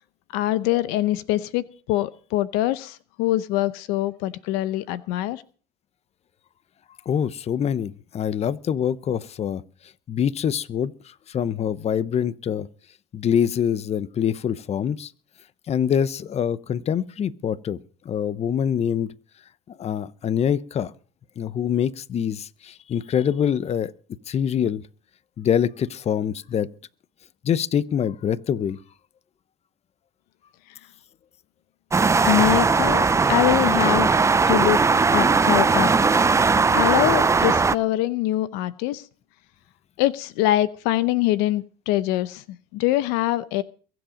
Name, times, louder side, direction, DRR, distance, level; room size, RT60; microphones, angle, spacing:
voice 1, 0.3-5.4 32.2-34.1 34.5-34.8 35.1-35.9 36.7-39.0 40.0-42.4 42.7-43.6, left 15 dB, 80° left, 16 dB, 0.7 m, -23 dB
voice 2, 7.1-9.6 10.1-12.7 13.1-15.1 15.7-17.8 18.0-19.1 19.7-20.9 21.4-23.9 24.3-24.8 25.4-26.7 27.4-28.8, left 8 dB, 40° left, 18 dB, 0.8 m, -25 dB
sound 1, 31.9-37.8, right 4 dB, 20° right, 0.6 m, -19 dB
23.0 x 7.8 x 5.2 m, 0.41 s
supercardioid pair, 90°, 16 cm